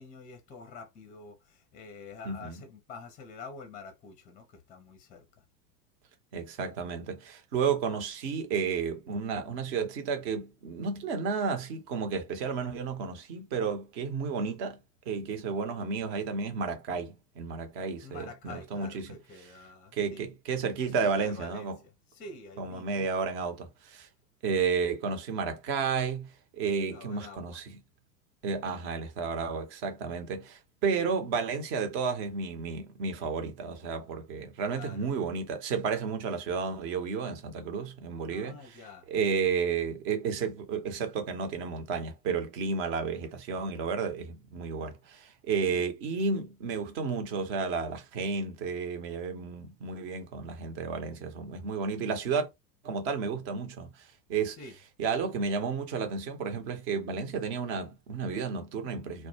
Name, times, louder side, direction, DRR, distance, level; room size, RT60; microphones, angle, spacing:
voice 1, 0.0-5.3 18.0-20.3 20.7-23.1 26.9-27.6 34.7-35.1 38.3-39.1 45.7-45.9 54.6-54.8, left 4 dB, 15° left, 0.5 m, -47 dB
voice 2, 6.3-14.8 15.1-19.1 19.9-21.8 22.6-24.1 24.4-26.3 26.5-27.8 28.4-38.8 39.1-52.5 52.8-54.6 55.0-59.3, right 5 dB, 45° right, 1.0 m, -32 dB
2.2 x 2.2 x 2.8 m
figure-of-eight pair, 90°, 49 cm